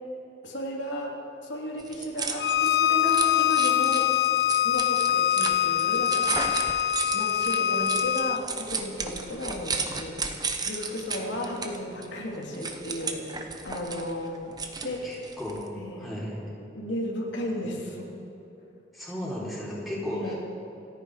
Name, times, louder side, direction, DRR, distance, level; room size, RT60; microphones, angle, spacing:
voice 1, 0.4-4.1 4.6-6.7 7.1-10.2 10.7-14.6 14.8-15.1 15.8-16.1 16.7-18.2 20.1-20.3, left 1 dB, 85° left, -2 dB, 3.1 m, -34 dB
sound 1, 1.8-15.7, right 4 dB, 20° right, 1.1 m, -34 dB
Bowed string instrument, 2.4-8.4, left 11 dB, 60° left, 0.4 m, -24 dB
voice 2, 15.0-15.6 16.0-16.4 18.9-20.4, left 1 dB, ahead, -8 dB, 4.2 m, -34 dB
27.5 x 9.7 x 5.1 m, 2.9 s
head